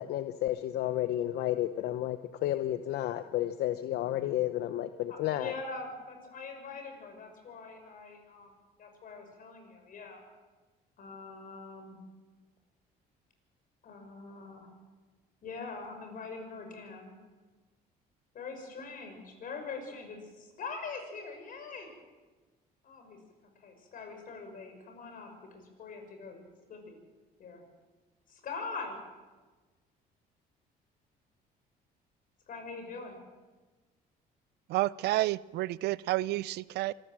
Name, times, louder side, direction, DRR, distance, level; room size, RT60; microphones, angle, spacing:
voice 1, 0.0-5.5, left 13 dB, 75° left, 10 dB, 0.8 m, -32 dB
voice 2, 5.1-8.5 8.8-10.2 11.0-12.0 13.8-14.7 15.4-17.1 18.3-21.9 22.8-23.2 23.6-26.4 26.7-27.0 27.4-27.6 28.3-29.0 32.5-33.2, left 4 dB, 55° left, 5 dB, 6.0 m, -43 dB
voice 3, 34.7-36.9, right 17 dB, 80° right, 20 dB, 0.6 m, -30 dB
25.5 x 14.5 x 7.6 m, 1.3 s
cardioid pair, 110°, 17 cm